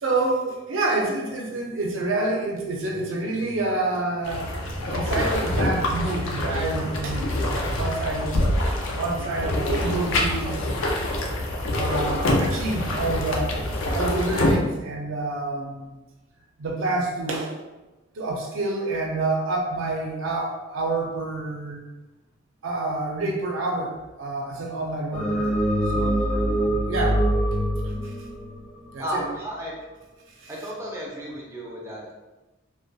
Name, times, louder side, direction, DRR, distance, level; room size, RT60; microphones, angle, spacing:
voice 1, 0.0-4.6 4.9-8.3 8.9-10.6 11.7-13.6 13.9-16.0 16.6-17.5 18.2-21.8 22.6-25.6 25.9-27.2 28.9-29.2 30.4-30.5, right 2 dB, 85° right, 0 dB, 0.5 m, -28 dB
sound 1, 4.2-14.6, left 1 dB, 80° left, 0.4 m, -25 dB
sound 2, 25.1-29.5, right 1 dB, 45° left, 0.7 m, -24 dB
voice 2, 29.0-29.7 30.5-32.1, equal, 15° right, -4 dB, 0.4 m, -33 dB
2.2 x 2.1 x 2.6 m, 1.1 s
head